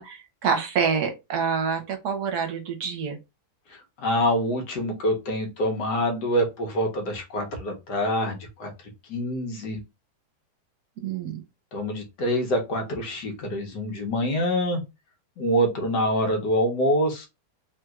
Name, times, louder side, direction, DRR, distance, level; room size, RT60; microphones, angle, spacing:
voice 1, 0.0-3.2 11.0-11.4, right 6 dB, 70° right, 1.2 m, -27 dB
voice 2, 3.7-8.7 9.1-9.8 11.7-14.8 15.4-17.3, equal, 75° left, 1.4 m, -26 dB
3.3 x 2.9 x 2.3 m
omnidirectional pair, 1.8 m